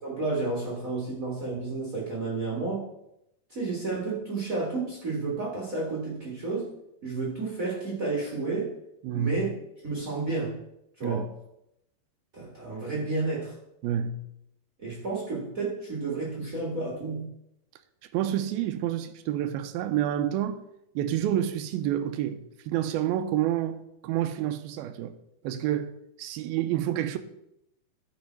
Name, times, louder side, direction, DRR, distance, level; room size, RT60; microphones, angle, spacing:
voice 1, 0.0-2.9 3.5-6.7 7.0-8.7 9.1-9.5 9.8-10.6 11.0-11.3 12.3-13.5 14.8-17.3, right 3 dB, 45° right, 1.1 m, -31 dB
voice 2, 9.0-9.4 11.0-11.3 13.8-14.2 18.1-20.6 21.0-22.4 22.7-25.1 25.4-27.2, right 11 dB, 80° right, 2.2 m, -28 dB
14.0 x 5.1 x 4.5 m
omnidirectional pair, 4.7 m